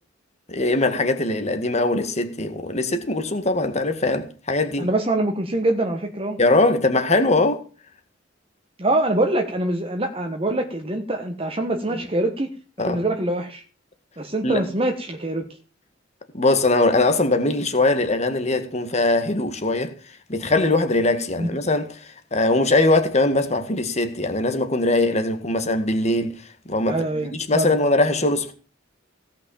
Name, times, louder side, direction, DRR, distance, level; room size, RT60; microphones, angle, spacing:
voice 1, 0.5-4.9 6.4-7.6 12.8-13.0 14.4-14.6 16.3-19.9 20.3-21.9 22.3-26.4 26.7-28.5, left 2 dB, 35° left, 2.0 m, -21 dB
voice 2, 4.8-6.4 8.8-12.5 12.8-13.6 14.2-15.4 21.4-21.5 26.9-27.8, right 1 dB, 30° right, 1.4 m, -24 dB
17.5 x 5.9 x 7.3 m
head